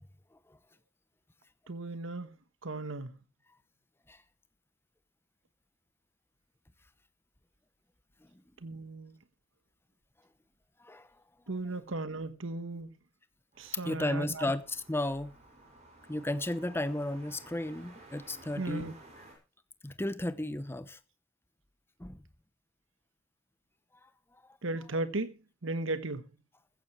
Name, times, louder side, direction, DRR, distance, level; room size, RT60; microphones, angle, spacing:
voice 1, 1.7-2.3 2.6-3.2 8.6-9.1 11.5-12.9 13.6-14.5 18.6-18.9 24.6-26.3, right 2 dB, 65° right, 1.3 m, -36 dB
sound 1, 13.5-19.4, right 2 dB, 35° right, 6.1 m, -55 dB
voice 2, 13.8-15.3 16.1-18.9 19.8-21.0 22.0-22.2, left 1 dB, 10° left, 0.9 m, -34 dB
15.0 x 14.5 x 3.2 m
head